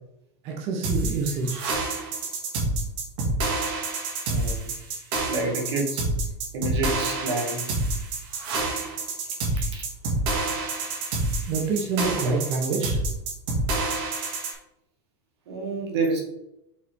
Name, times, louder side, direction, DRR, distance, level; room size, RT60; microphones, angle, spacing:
voice 1, 0.4-1.8 11.5-13.0, right 4 dB, 45° right, 0 dB, 1.4 m, -27 dB
sound 1, 0.8-14.5, right 2 dB, 65° right, 2.4 m, -28 dB
voice 2, 4.3-4.8 5.3-6.0 6.5-7.7 9.5-9.8 15.5-16.2, right 2 dB, 85° right, -1 dB, 2.3 m, -28 dB
5.8 x 3.9 x 4.8 m, 0.82 s
supercardioid pair, 140°, 14 cm